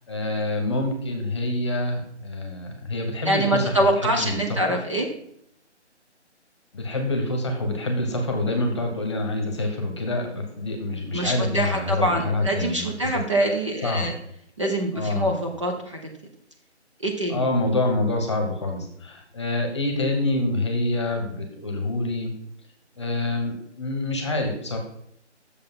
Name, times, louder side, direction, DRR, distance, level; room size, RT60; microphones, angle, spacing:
voice 1, 0.0-4.6 6.7-13.2 13.8-14.1 14.9-15.3 17.3-22.3 23.0-24.8, left 2 dB, 25° left, 3 dB, 1.2 m, -26 dB
voice 2, 3.2-5.1 11.1-14.1 14.6-16.0 17.0-17.4, right 1 dB, 25° right, 1 dB, 0.8 m, -24 dB
7.9 x 6.8 x 5.5 m, 0.69 s
figure-of-eight pair, 165°, 35 cm